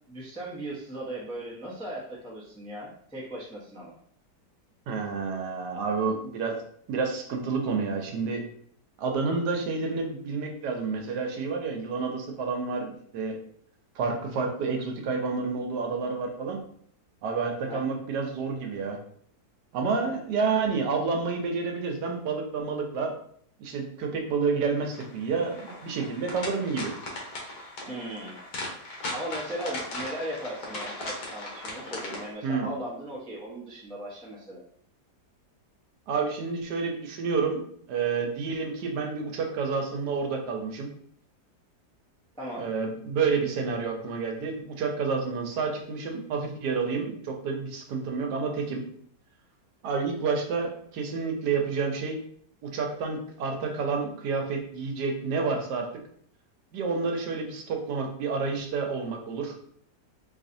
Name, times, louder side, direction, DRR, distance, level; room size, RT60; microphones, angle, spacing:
voice 1, 0.1-3.9 17.6-17.8 27.9-28.4 29.1-34.6 42.4-42.7, right 1 dB, 5° left, -5 dB, 0.4 m, -37 dB
voice 2, 4.9-6.5 6.9-8.4 9.0-13.4 13.9-16.6 17.2-19.0 19.7-23.1 23.6-26.9 32.4-32.7 36.1-37.6 37.9-40.9 42.6-48.8 49.8-52.2 52.6-55.9 56.7-59.6, right 4 dB, 75° right, 3 dB, 1.3 m, -29 dB
sound 1, 24.9-32.3, left 2 dB, 65° left, 1.5 m, -38 dB
4.1 x 3.1 x 2.6 m, 0.63 s
omnidirectional pair, 1.8 m